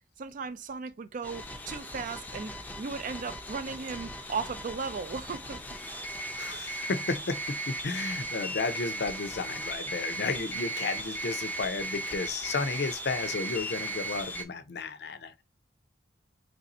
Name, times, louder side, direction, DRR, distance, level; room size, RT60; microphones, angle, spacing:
voice 1, 0.2-5.6, right 5 dB, 50° right, 0.4 m, -36 dB
sound 1, 1.2-14.4, right 2 dB, 10° left, 0.5 m, -37 dB
voice 2, 6.4-15.4, left 4 dB, 65° left, 0.5 m, -33 dB
3.2 x 2.6 x 4.0 m
head